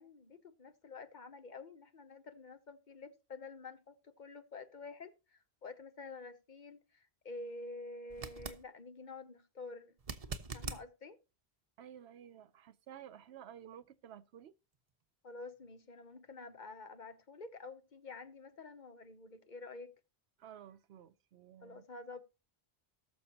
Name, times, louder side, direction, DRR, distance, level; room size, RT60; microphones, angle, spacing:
voice 1, 0.0-9.9 10.5-11.2 15.2-19.9 21.6-22.2, left 3 dB, 50° left, 1.0 m, -49 dB
sound 1, 8.1-8.6 10.0-10.8 13.8-13.9, right 4 dB, 40° right, 0.8 m, -42 dB
voice 2, 11.8-14.5 20.4-21.8, right 9 dB, 85° right, 0.9 m, -53 dB
18.5 x 6.5 x 2.9 m
omnidirectional pair, 1.1 m